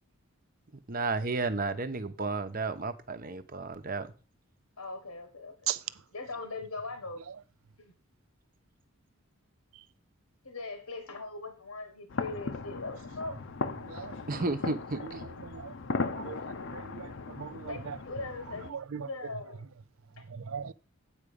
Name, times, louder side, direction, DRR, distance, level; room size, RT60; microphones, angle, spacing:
voice 1, 0.9-4.1 14.3-15.3, right 3 dB, 40° right, 0.9 m, -32 dB
voice 2, 4.8-5.7 6.1-7.2 7.8-7.9 10.4-13.3 17.7-19.6 20.2-20.3, left 3 dB, 85° left, 1.5 m, -40 dB
sound 1, 12.1-18.7, left 4 dB, 60° left, 0.7 m, -37 dB
voice 3, 16.7-17.1 17.4-18.0 18.7-19.1 20.3-20.7, right 9 dB, 65° right, 0.5 m, -37 dB
8.9 x 5.0 x 6.9 m
head